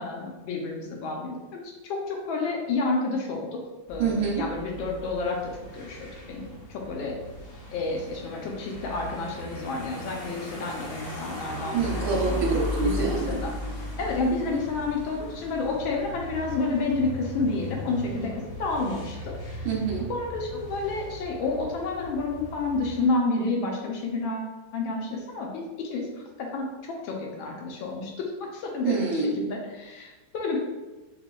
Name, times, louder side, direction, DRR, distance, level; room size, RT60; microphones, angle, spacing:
voice 1, 0.0-3.6 3.9-5.4 5.7-7.1 7.7-12.5 12.8-13.5 14.0-18.3 18.6-19.7 20.1-26.1 26.4-29.0 29.4-30.6, left 3 dB, 80° left, 0 dB, 1.4 m, -30 dB
sound 1, 3.9-23.1, left 1 dB, 55° left, 0.7 m, -37 dB
voice 2, 4.0-4.4 11.7-13.4 19.6-20.1 28.8-29.3, right 5 dB, 80° right, -2 dB, 1.6 m, -26 dB
5.1 x 2.2 x 2.3 m, 1.1 s
omnidirectional pair, 2.2 m